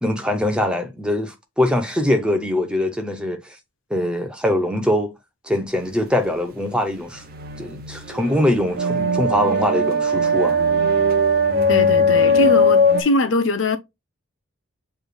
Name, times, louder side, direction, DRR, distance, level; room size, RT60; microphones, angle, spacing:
voice 1, 0.0-3.6 3.9-5.1 5.4-7.2 7.6-10.6, left 1 dB, 5° right, 0.7 m, -22 dB
sound 1, 7.2-13.0, left 1 dB, 45° right, 0.8 m, -19 dB
voice 2, 11.7-13.8, left 2 dB, 65° left, 0.7 m, -22 dB
7.0 x 3.3 x 2.2 m
head